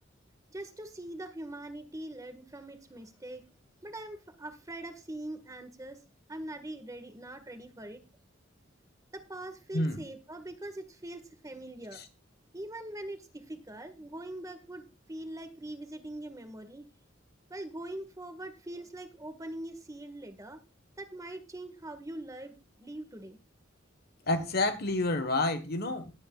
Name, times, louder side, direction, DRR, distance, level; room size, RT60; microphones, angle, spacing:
voice 1, 0.5-3.4 3.8-6.0 6.3-8.0 9.1-12.0 12.5-16.8 17.5-20.6 21.0-23.4, right 1 dB, 15° right, 8 dB, 1.7 m, -42 dB
voice 2, 24.3-26.1, left 2 dB, 55° left, 10 dB, 1.3 m, -29 dB
19.0 x 8.7 x 2.4 m, 0.28 s
head